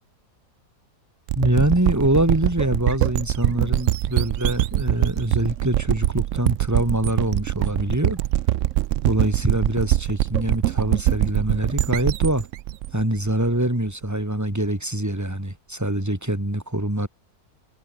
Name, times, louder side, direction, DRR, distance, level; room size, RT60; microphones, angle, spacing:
voice 1, 1.3-8.2 9.0-12.5 12.9-17.1, right 1 dB, 10° right, 3.4 m, -24 dB
sound 1, 1.3-13.9, right 14 dB, 65° right, 0.8 m, -23 dB
omnidirectional pair, 1.6 m